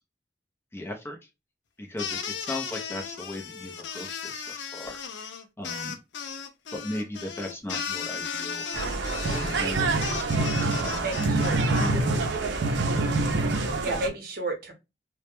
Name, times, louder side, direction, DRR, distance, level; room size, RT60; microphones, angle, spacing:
voice 1, 0.7-1.2 1.8-5.0 5.6-6.0 6.7-8.6 9.3-10.3 10.8-11.3 11.8-12.1 13.8-13.9, left 1 dB, 15° left, 1 dB, 0.4 m, -37 dB
sound 1, 2.0-11.9, left 6 dB, 85° left, 0.4 m, -36 dB
sound 2, 8.7-14.1, right 2 dB, 90° right, 0.5 m, -26 dB
voice 2, 10.9-12.0 13.6-14.7, right 2 dB, 55° right, 3 dB, 0.7 m, -33 dB
2.1 x 2.1 x 2.9 m, 0.24 s
head